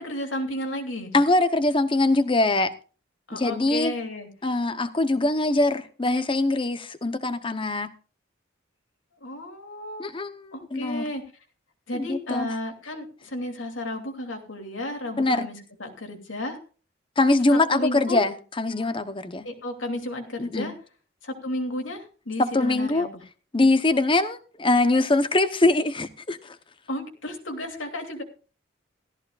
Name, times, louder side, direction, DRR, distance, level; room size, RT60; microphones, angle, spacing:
voice 1, 0.0-1.1 3.3-4.3 9.2-10.1 10.5-11.2 11.9-16.6 17.5-18.2 19.4-20.7 21.2-23.2 26.9-28.2, left 1 dB, 85° left, 2.9 m, -33 dB
voice 2, 1.1-2.7 3.3-3.9 4.4-7.9 10.0-11.0 11.9-12.6 15.2-15.5 17.2-19.5 20.4-20.7 22.4-23.1 23.5-26.6, left 2 dB, 25° left, 0.8 m, -23 dB
16.5 x 14.0 x 2.4 m
head